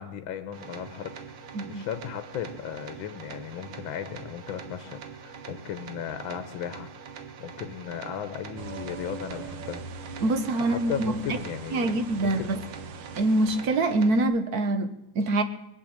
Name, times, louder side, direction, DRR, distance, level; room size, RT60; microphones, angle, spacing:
voice 1, 0.0-6.9 7.4-9.8 10.6-12.5, left 9 dB, 70° left, 1.6 m, -36 dB
sound 1, 0.5-14.2, right 6 dB, 85° right, 2.1 m, -44 dB
voice 2, 1.5-1.9 10.2-11.4 11.7-12.6 13.1-15.4, right 2 dB, 55° right, 1.5 m, -25 dB
sound 2, 8.6-13.6, right 4 dB, 70° right, 1.6 m, -41 dB
20.5 x 7.9 x 8.8 m
omnidirectional pair, 2.3 m